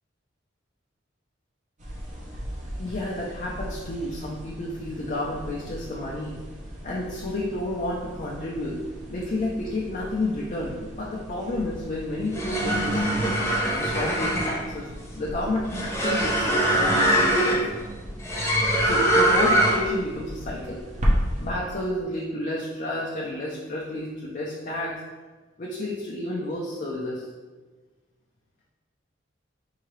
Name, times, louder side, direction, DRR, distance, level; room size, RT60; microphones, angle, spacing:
sound 1, 1.8-21.5, equal, 40° right, 0.8 m, -36 dB
voice 1, 2.8-6.4 6.8-8.8 9.1-13.3 13.7-14.9 15.1-17.6 18.8-20.9 21.4-25.0 25.6-27.3, left 1 dB, 45° left, -4 dB, 0.5 m, -31 dB
sound 2, 12.2-20.0, right 1 dB, 15° left, 0.9 m, -23 dB
4.7 x 2.8 x 3.1 m, 1.3 s
head